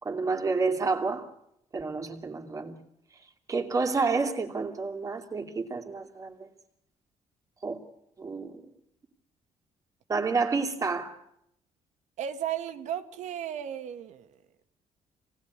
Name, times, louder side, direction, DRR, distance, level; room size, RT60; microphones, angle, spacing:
voice 1, 0.0-1.3 1.7-2.8 3.5-6.4 7.6-7.8 8.2-8.6 10.1-11.2, right 4 dB, 25° right, 2.8 m, -29 dB
voice 2, 12.2-14.3, right 10 dB, 75° right, 1.7 m, -34 dB
27.0 x 19.0 x 9.6 m
cardioid pair, 140°, 12 cm